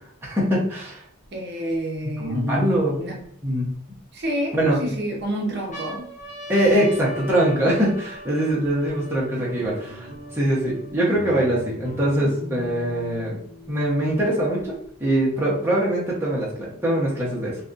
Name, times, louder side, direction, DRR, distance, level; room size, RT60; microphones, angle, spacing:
voice 1, 0.2-1.0 2.2-3.0 3.4-3.7 4.5-4.8 6.5-13.4 13.7-17.6, right 1 dB, 10° right, -6 dB, 0.9 m, -23 dB
sound 1, 1.2-1.3 2.0-3.2 4.0-4.7 5.2-5.3 5.5-11.2 11.9-12.0 12.1-13.1 14.1-15.1, left 1 dB, 35° left, 1.2 m, -41 dB
voice 2, 1.3-3.2 4.1-6.1 6.5-6.9, right 1 dB, 50° right, -1 dB, 0.8 m, -29 dB
sound 2, 8.8-14.7, equal, 70° left, 1.0 m, -41 dB
3.9 x 2.8 x 2.5 m, 0.68 s
head